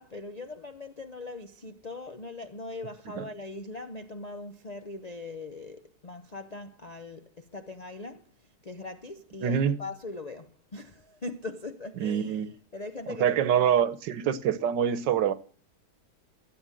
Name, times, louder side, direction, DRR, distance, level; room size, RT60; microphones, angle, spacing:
voice 1, 0.0-8.3 8.6-13.7, left 2 dB, 55° left, 0.4 m, -41 dB
voice 2, 9.4-9.8 12.0-12.5 13.2-15.3, right 9 dB, 85° right, 1.6 m, -25 dB
14.5 x 7.9 x 7.6 m
omnidirectional pair, 1.9 m